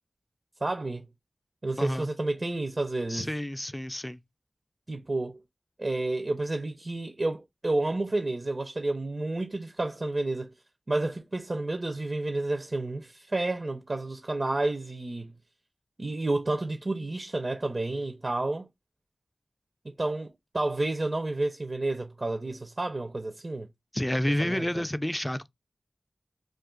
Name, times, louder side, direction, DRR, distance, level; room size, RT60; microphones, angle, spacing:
voice 1, 0.6-1.1 1.6-3.3 4.9-5.4 5.8-10.5 10.9-15.3 16.0-18.7 19.8-23.7 24.4-24.8, right 2 dB, 50° right, 0.5 m, -30 dB
voice 2, 1.8-2.1 3.1-4.2 23.9-25.5, left 1 dB, 15° left, 0.3 m, -29 dB
2.4 x 2.4 x 3.6 m
cardioid pair, 40°, 0 cm